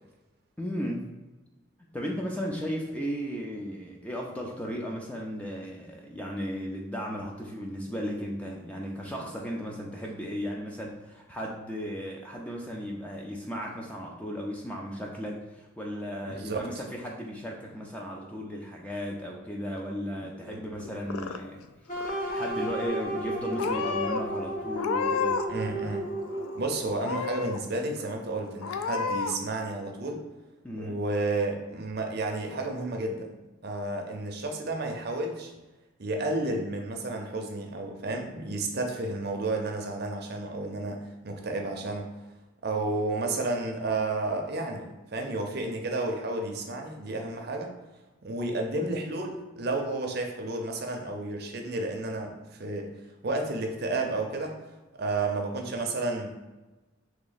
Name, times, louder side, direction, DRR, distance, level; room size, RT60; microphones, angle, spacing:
voice 1, 0.6-1.1 1.9-21.6 22.0-25.4 30.6-31.0, equal, 5° left, -1 dB, 0.3 m, -35 dB
voice 2, 16.3-16.7 20.2-20.6 25.5-26.1 26.5-30.2 30.8-33.3 33.6-35.5 36.0-42.1 42.6-47.7 48.2-52.9 53.2-54.5 54.9-56.3, right 2 dB, 50° right, 2 dB, 0.5 m, -31 dB
Purr / Meow, 20.8-21.7 21.9-22.5 23.2-23.3 23.6-24.2 24.7-25.6 25.9-26.6 27.0-27.6 28.0-28.1 28.6-29.4, left 5 dB, 85° left, 0.3 m, -31 dB
sound 1, 21.9-26.8, right 1 dB, 40° left, 0.7 m, -33 dB
3.1 x 2.9 x 4.0 m, 1.1 s
head